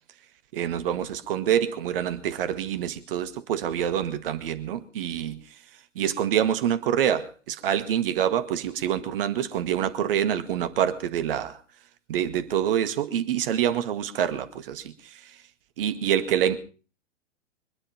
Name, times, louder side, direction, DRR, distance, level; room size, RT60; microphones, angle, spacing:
voice 1, 0.5-5.4 6.0-11.5 12.1-15.4 15.8-16.6, right 9 dB, 50° right, 1.9 m, -26 dB
24.5 x 9.9 x 5.6 m
figure-of-eight pair, 105°, 36 cm